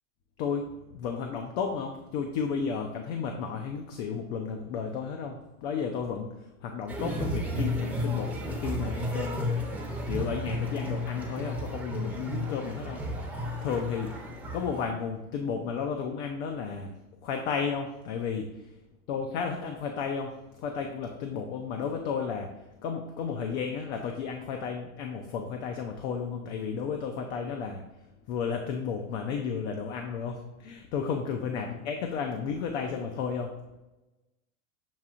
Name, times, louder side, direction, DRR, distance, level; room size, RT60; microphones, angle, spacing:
voice 1, 0.4-9.5 10.1-13.3 13.6-17.0 17.2-18.7 19.1-22.5 22.8-27.8 28.3-33.5, left 6 dB, 50° left, 3 dB, 0.6 m, -33 dB
sound 1, 6.9-14.9, left 1 dB, 5° right, 0.7 m, -33 dB
7.2 x 2.7 x 2.5 m, 1.0 s
supercardioid pair, 130°, 43 cm